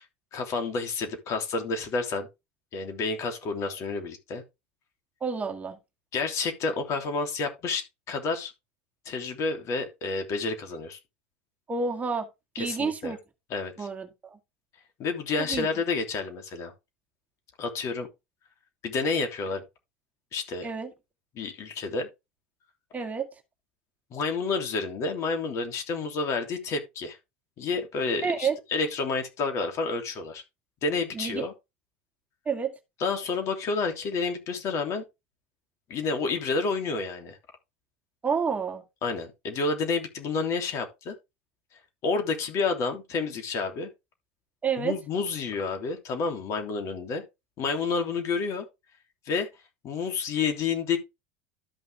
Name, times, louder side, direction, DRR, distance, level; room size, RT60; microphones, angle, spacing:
voice 1, 0.3-2.3 2.7-4.4 6.1-8.5 9.0-11.0 12.5-13.2 13.5-13.9 15.0-16.7 17.6-18.1 18.8-19.6 20.3-20.7 21.3-22.1 24.1-27.2 27.6-30.4 30.8-31.5 33.0-35.0 35.9-37.4 39.0-41.1 42.0-43.9 44.8-47.2 47.6-48.6 49.3-49.5 49.8-51.0, left 4 dB, 50° left, 3.1 m, -29 dB
voice 2, 5.2-5.8 11.7-12.3 12.6-13.2 13.8-14.4 15.4-15.7 20.6-20.9 22.9-23.3 28.2-28.6 31.1-31.4 32.5-32.7 38.2-38.8 44.6-44.9, right 5 dB, 25° right, 1.8 m, -29 dB
13.0 x 5.6 x 3.5 m
hypercardioid pair, 95°, 6 cm